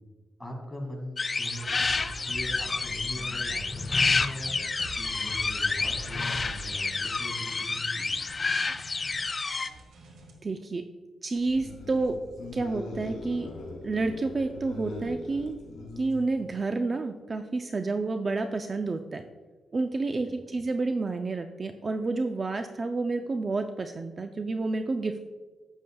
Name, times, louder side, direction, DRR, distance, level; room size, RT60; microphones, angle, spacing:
voice 1, 0.4-4.6 4.9-8.1 20.2-20.6, equal, 10° left, 1 dB, 2.1 m, -40 dB
sound 1, 1.2-9.7, left 4 dB, 35° left, 0.4 m, -29 dB
sound 2, 1.7-10.3, right 1 dB, 90° right, 1.7 m, -45 dB
voice 2, 10.4-10.8 11.2-12.2 12.5-13.5 13.8-15.6 16.0-19.2 19.7-25.3, right 3 dB, 35° right, 7 dB, 0.4 m, -29 dB
sound 3, 11.4-16.5, left 2 dB, 85° left, 2.2 m, -41 dB
11.5 x 8.1 x 2.3 m, 1.3 s
cardioid pair, 105°, 0 cm